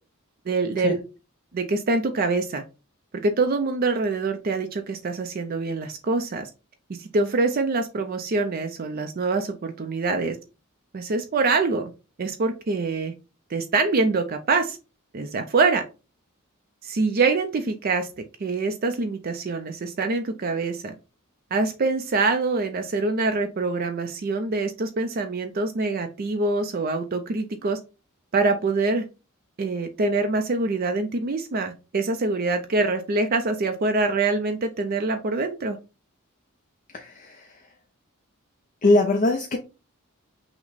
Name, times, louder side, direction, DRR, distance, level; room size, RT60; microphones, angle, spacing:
voice 1, 0.5-1.0 1.5-2.6 3.1-6.5 6.9-10.4 10.9-11.9 12.2-13.1 13.5-14.8 15.1-15.8 16.8-18.1 18.4-20.9 21.5-27.8 28.3-29.0 29.6-35.8, right 3 dB, 45° right, 6 dB, 0.4 m, -25 dB
voice 2, 36.9-37.7 38.8-39.6, left 2 dB, 40° left, 3 dB, 0.5 m, -22 dB
5.9 x 2.1 x 3.9 m, 0.31 s
head